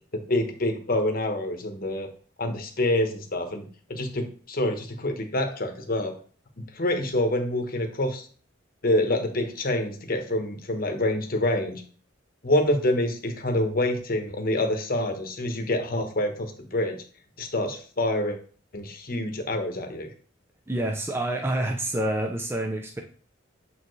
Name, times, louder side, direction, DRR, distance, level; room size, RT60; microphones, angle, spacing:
voice 1, 0.3-2.1 2.4-6.1 6.7-8.3 8.8-11.8 12.4-17.0 17.4-18.4 18.7-20.1, left 1 dB, 45° left, 5 dB, 1.0 m, -26 dB
voice 2, 20.7-23.0, right 1 dB, 10° right, 2 dB, 0.5 m, -27 dB
7.0 x 4.5 x 3.2 m, 0.42 s
head